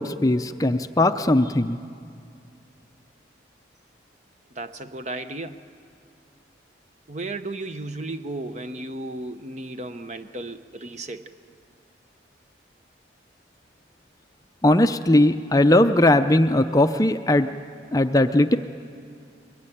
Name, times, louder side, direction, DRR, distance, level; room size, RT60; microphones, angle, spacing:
voice 1, 0.0-1.8 14.6-17.5 17.9-18.6, left 1 dB, 20° left, 8 dB, 0.5 m, -19 dB
voice 2, 4.5-5.6 7.1-11.2, right 2 dB, 40° right, 9 dB, 0.8 m, -34 dB
22.5 x 22.0 x 10.0 m, 2.3 s
head